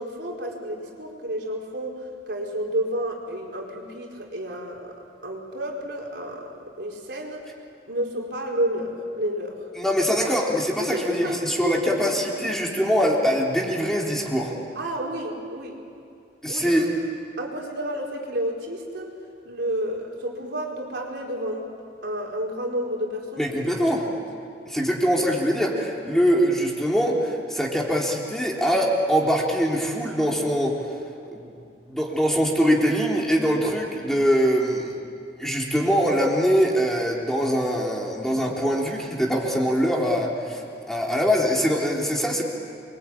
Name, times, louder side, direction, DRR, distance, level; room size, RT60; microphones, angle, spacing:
voice 1, 0.0-4.9 5.2-7.4 7.9-9.6 10.8-12.5 14.7-15.8 16.5-16.8 17.4-19.1 19.4-21.7 22.0-23.5 23.8-24.2 42.2-42.3, right 1 dB, 65° right, 0 dB, 4.7 m, -31 dB
voice 2, 9.8-14.5 16.4-17.0 23.4-24.1 24.7-30.8 31.3-31.5 31.9-34.9 35.4-40.6 40.9-42.4, equal, ahead, -2 dB, 3.6 m, -23 dB
28.5 x 23.5 x 8.8 m, 2.4 s
head